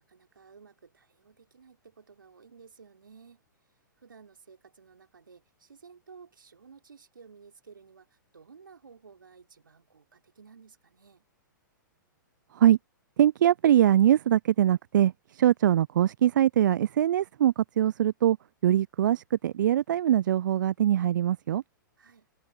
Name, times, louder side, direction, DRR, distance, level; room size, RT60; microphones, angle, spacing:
voice 1, 0.0-3.4 4.0-11.2 22.0-22.3, right 5 dB, 85° right, 4.1 m, -54 dB
voice 2, 13.2-18.4 18.6-21.6, right 11 dB, 65° right, 0.4 m, -23 dB
hypercardioid pair, 115°, 11 cm